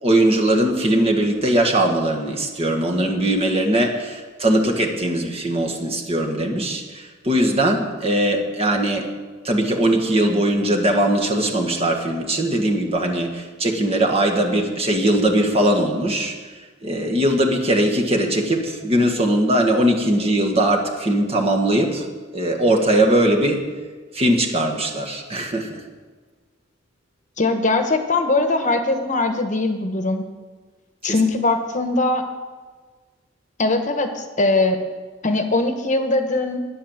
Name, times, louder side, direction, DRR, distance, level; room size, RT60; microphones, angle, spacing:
voice 1, 0.0-9.1 9.4-16.3 16.8-22.1 22.3-23.7 24.1-25.8 31.0-31.2, right 1 dB, 30° right, 1 dB, 1.7 m, -20 dB
voice 2, 27.4-30.2 31.0-32.2 33.6-34.8 35.2-36.6, left 2 dB, 40° left, 6 dB, 1.2 m, -21 dB
11.0 x 10.5 x 7.3 m, 1.4 s
head